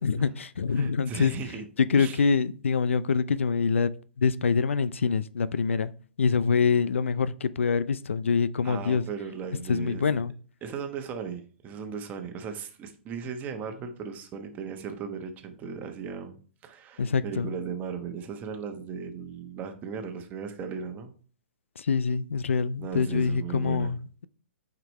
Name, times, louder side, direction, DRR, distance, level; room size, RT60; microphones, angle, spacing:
voice 1, 0.0-1.3 1.8-3.9 4.2-5.9 6.2-9.0 9.7-10.3 17.0-17.5 21.8-24.3, left 5 dB, 75° left, 0.5 m, -25 dB
voice 2, 0.7-1.6 1.9-2.2 8.6-10.0 10.6-16.3 16.6-21.1 22.8-23.9, right 6 dB, 25° right, 1.3 m, -37 dB
8.9 x 5.2 x 3.2 m
hypercardioid pair, 120°, 7 cm